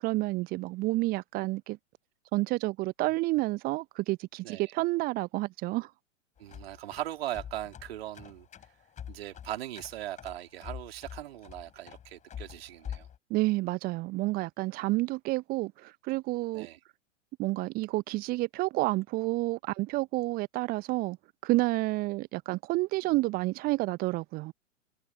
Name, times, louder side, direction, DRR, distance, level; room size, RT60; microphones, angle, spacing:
voice 1, 0.0-1.8 2.3-5.9 13.3-16.7 17.4-21.2 21.4-24.5, right 20 dB, 25° right, 0.9 m, -30 dB
sound 1, 6.4-13.2, left 9 dB, 20° left, 6.9 m, -45 dB
voice 2, 6.4-8.5 9.1-13.1 16.5-16.8, right 13 dB, 50° right, 3.8 m, -39 dB
figure-of-eight pair, 105°, 39 cm